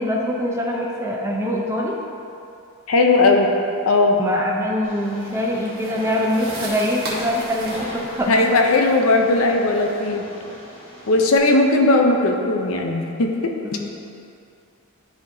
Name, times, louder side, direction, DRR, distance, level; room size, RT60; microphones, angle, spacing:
voice 1, 0.0-1.9 4.1-8.3 13.7-13.9, equal, 15° right, -1 dB, 0.6 m, -24 dB
voice 2, 2.9-3.5 3.9-4.2 8.3-10.3 11.1-13.5, left 2 dB, 65° left, 3 dB, 0.6 m, -17 dB
Train, 4.8-11.4, left 1 dB, 25° left, 1.3 m, -38 dB
sound 1, 5.2-10.1, right 2 dB, 45° right, 1.3 m, -38 dB
11.5 x 4.3 x 2.7 m, 2.7 s
head